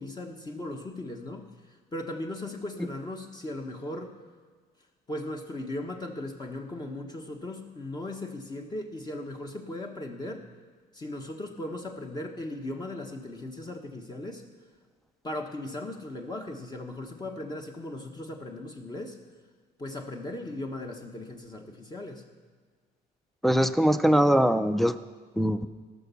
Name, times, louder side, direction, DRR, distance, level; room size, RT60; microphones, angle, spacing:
voice 1, 0.0-4.2 5.1-10.4 10.9-14.4 15.2-19.2 19.8-22.3, left 1 dB, 25° left, 2 dB, 1.2 m, -37 dB
voice 2, 23.4-24.9 25.4-25.7, equal, ahead, 11 dB, 0.5 m, -22 dB
17.5 x 6.1 x 6.9 m, 1.5 s
cardioid pair, 110°, 17 cm